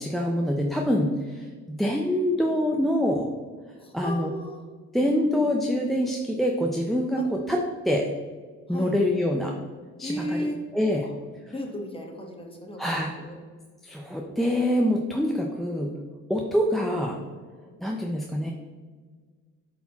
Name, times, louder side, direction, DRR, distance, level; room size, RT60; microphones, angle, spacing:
voice 1, 0.0-3.3 3.9-4.3 4.9-7.6 7.8-8.1 8.7-9.5 10.0-10.5 10.7-11.1 12.8-13.1 13.8-15.9 16.3-17.2 17.8-18.5, equal, ahead, 0 dB, 0.6 m, -25 dB
voice 2, 3.8-4.6 7.2-7.3 8.7-8.9 10.0-10.6 11.5-13.4, left 1 dB, 20° left, 1 dB, 1.2 m, -34 dB
8.0 x 4.2 x 2.9 m, 1.5 s
cardioid pair, 90°, 30 cm